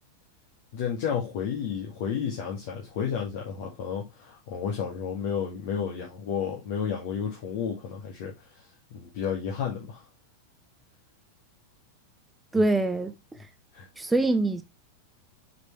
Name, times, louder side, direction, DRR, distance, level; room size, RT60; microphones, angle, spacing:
voice 1, 0.7-8.6 8.9-10.0 12.5-12.7 13.7-13.9, left 7 dB, 50° left, 2.0 m, -32 dB
voice 2, 12.5-13.1 14.0-14.6, right 2 dB, 10° right, 0.8 m, -24 dB
6.5 x 5.9 x 3.1 m
figure-of-eight pair, 90°, 0 cm